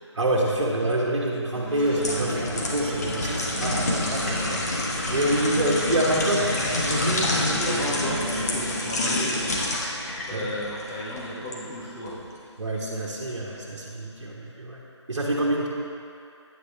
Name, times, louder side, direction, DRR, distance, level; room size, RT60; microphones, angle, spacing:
voice 1, 0.1-7.4 10.3-10.5 12.6-14.8 15.1-15.7, right 1 dB, 65° right, -5 dB, 1.4 m, -27 dB
Acoustic guitar, 1.6-9.5, right 1 dB, 25° right, 1.0 m, -37 dB
sound 1, 1.7-11.6 12.1-12.2, left 1 dB, 35° left, 1.2 m, -28 dB
voice 2, 7.3-9.8 10.2-12.2, equal, 5° left, -5 dB, 0.4 m, -33 dB
9.3 x 8.3 x 3.4 m, 2.5 s
figure-of-eight pair, 160°, 15 cm